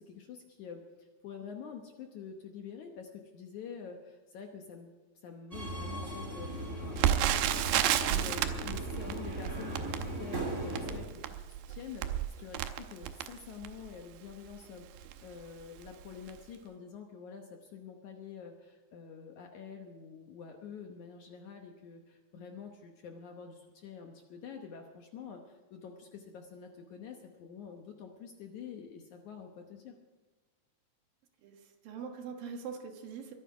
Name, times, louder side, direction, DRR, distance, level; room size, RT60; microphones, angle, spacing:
voice 1, 0.0-4.9 5.2-11.3 11.7-14.9 15.2-30.0, left 6 dB, 65° left, 3 dB, 2.0 m, -47 dB
Subway metro underground, 5.5-11.0, right 1 dB, 20° right, 2.7 m, -38 dB
Crackle, 7.0-13.9 14.5-14.6 15.0-15.2 15.8-16.0 16.3-16.4, right 11 dB, 85° right, 2.7 m, -32 dB
voice 2, 31.4-33.3, right 6 dB, 65° right, 3 dB, 3.1 m, -43 dB
23.0 x 9.5 x 4.8 m, 1.3 s
omnidirectional pair, 4.5 m